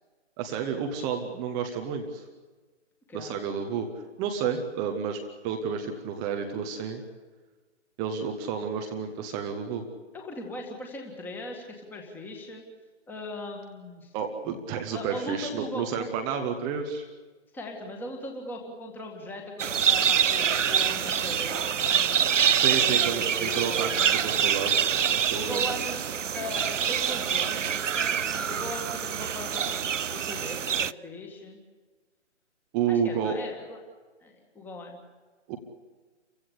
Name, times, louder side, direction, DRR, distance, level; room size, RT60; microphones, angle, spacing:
voice 1, 0.4-2.2 3.1-3.9 4.2-7.0 8.0-9.8 14.1-17.0 22.5-24.7 25.3-25.8 32.7-33.4 35.5-35.6, right 7 dB, 10° right, 5 dB, 0.8 m, -30 dB
voice 2, 10.1-12.6 13.1-14.1 14.9-16.1 17.5-22.3 22.8-24.3 25.3-26.0 26.3-29.8 30.1-31.6 32.9-33.8 34.2-35.0, left 1 dB, 5° left, 2 dB, 2.0 m, -39 dB
sound 1, 19.6-30.9, right 8 dB, 80° right, 0.7 m, -26 dB
29.5 x 16.0 x 8.3 m, 1.3 s
figure-of-eight pair, 145°, 37 cm